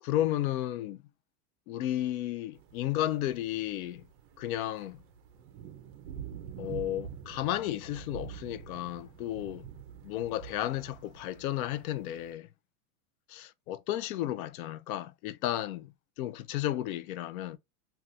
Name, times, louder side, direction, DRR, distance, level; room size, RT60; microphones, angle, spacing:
voice 1, 0.0-1.0 1.7-4.0 4.4-5.0 6.6-9.7 10.0-12.5 13.7-15.9 16.2-17.6, left 13 dB, 70° left, 0.5 m, -33 dB
sound 1, 2.5-12.3, right 8 dB, 40° right, 0.4 m, -47 dB
2.4 x 2.3 x 3.9 m
supercardioid pair, 150°, 44 cm